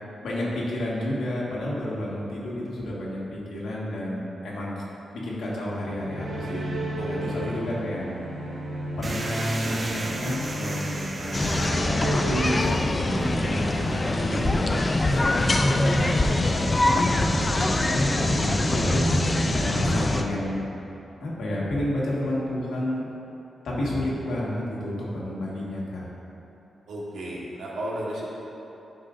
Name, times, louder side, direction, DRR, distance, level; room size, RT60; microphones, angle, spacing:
voice 1, 0.2-4.8 5.1-6.7 7.1-8.0 9.0-14.8 15.1-17.3 17.5-19.0 19.5-20.6 21.2-23.0 23.6-26.0, left 1 dB, 85° left, -5 dB, 1.7 m, -31 dB
sound 1, 5.7-20.9, right 1 dB, 70° right, 1.3 m, -33 dB
voice 2, 7.0-7.6 15.0-15.6 26.9-28.3, right 1 dB, 90° right, -5 dB, 1.5 m, -34 dB
sound 2, 9.0-17.7, right 2 dB, 30° right, 0.6 m, -38 dB
sound 3, 11.3-20.2, left 2 dB, 25° left, 0.4 m, -24 dB
11.5 x 5.6 x 2.6 m, 3.0 s
wide cardioid pair, 125°, 0 cm